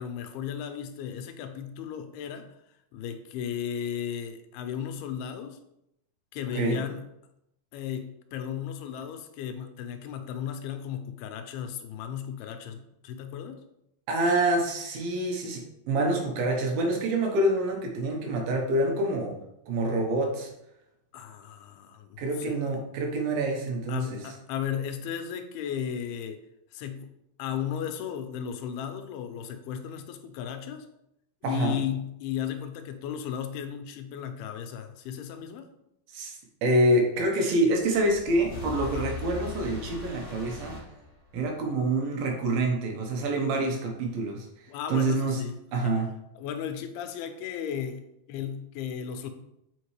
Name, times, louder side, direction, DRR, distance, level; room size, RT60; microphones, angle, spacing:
voice 1, 0.0-2.5 2.9-5.6 6.3-7.0 7.7-13.6 21.1-22.6 23.9-26.4 26.7-27.1 27.4-30.9 31.4-35.7 38.8-39.1 41.4-41.5 44.7-45.6 45.8-46.0 46.4-48.0 48.3-49.3, left 8 dB, 85° left, 7 dB, 2.6 m, -35 dB
voice 2, 14.1-19.4 19.7-20.5 22.2-24.0 31.4-31.8 36.1-40.8 41.3-45.4 45.7-46.1, right 1 dB, 75° right, 1 dB, 2.8 m, -26 dB
sound 1, 37.8-41.6, left 2 dB, 70° left, 0.3 m, -39 dB
7.2 x 5.1 x 3.2 m, 0.81 s
omnidirectional pair, 4.5 m